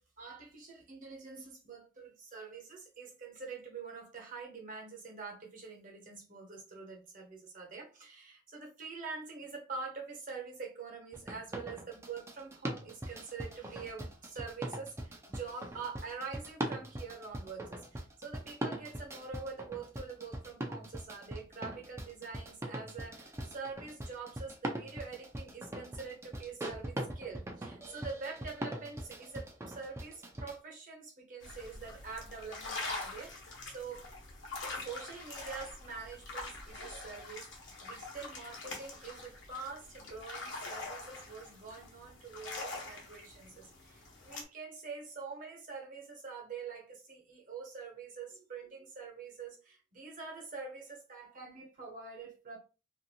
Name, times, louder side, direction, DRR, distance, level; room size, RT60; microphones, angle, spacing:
voice 1, 0.0-34.1 34.7-52.6, right 4 dB, 45° right, 1.0 m, -45 dB
sound 1, 11.1-30.6, right 1 dB, 15° right, 0.4 m, -41 dB
sound 2, 31.4-44.4, left 3 dB, 75° left, 1.0 m, -44 dB
2.6 x 2.6 x 2.7 m
head